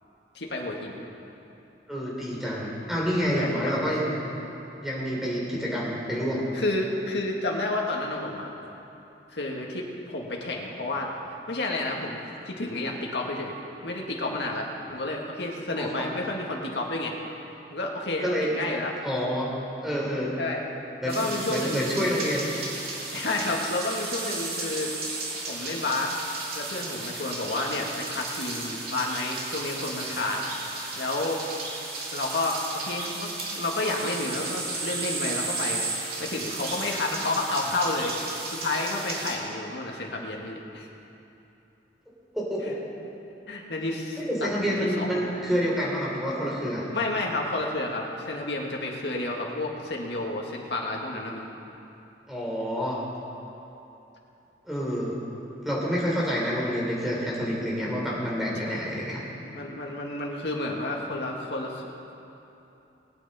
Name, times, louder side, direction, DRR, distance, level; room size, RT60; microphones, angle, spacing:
voice 1, 0.3-1.0 3.4-3.8 6.5-8.5 9.3-11.1 11.5-12.2 12.5-13.5 13.8-17.2 17.7-18.9 20.4-20.6 21.0-22.0 23.1-24.9 25.5-31.4 32.1-35.9 36.2-40.9 43.5-45.4 46.9-51.5 58.6-58.9 59.4-61.9, left 2 dB, 70° left, -1 dB, 1.8 m, -30 dB
voice 2, 1.9-4.2 4.8-6.5 15.7-16.1 18.2-18.5 19.0-19.5 19.8-20.3 21.0-22.4 30.2-30.3 42.3-42.8 44.2-46.8 52.3-53.0 54.6-55.2 55.6-59.2, equal, ahead, -5 dB, 3.2 m, -28 dB
sound 1, 21.1-39.3, right 3 dB, 60° right, 2.5 m, -34 dB
21.5 x 9.2 x 4.2 m, 2.9 s
head